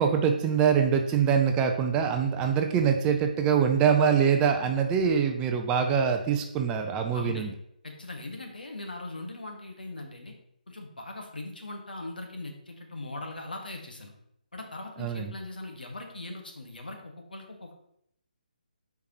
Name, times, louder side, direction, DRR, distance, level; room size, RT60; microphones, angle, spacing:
voice 1, 0.0-7.5 15.0-15.3, right 7 dB, 15° right, 5 dB, 0.4 m, -24 dB
voice 2, 7.1-7.5 7.8-10.3 10.7-14.1 14.5-17.7, left 2 dB, 75° left, 2 dB, 1.5 m, -40 dB
8.2 x 4.6 x 3.0 m, 0.74 s
figure-of-eight pair, 145°, 5 cm